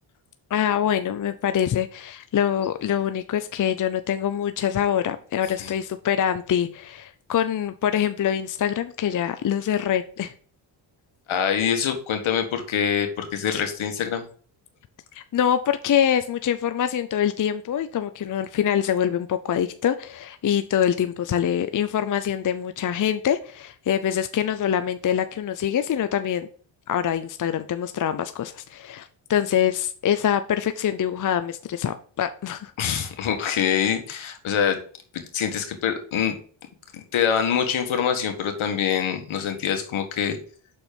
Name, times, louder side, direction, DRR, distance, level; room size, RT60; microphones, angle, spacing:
voice 1, 0.5-10.3 15.1-26.5 26.9-32.7, left 9 dB, 40° left, 10 dB, 0.6 m, -24 dB
voice 2, 11.3-14.3 32.8-34.8 35.1-36.3 36.9-40.4, left 8 dB, 70° left, 6 dB, 1.6 m, -25 dB
6.2 x 4.3 x 5.2 m, 0.44 s
cardioid pair, 70°, 49 cm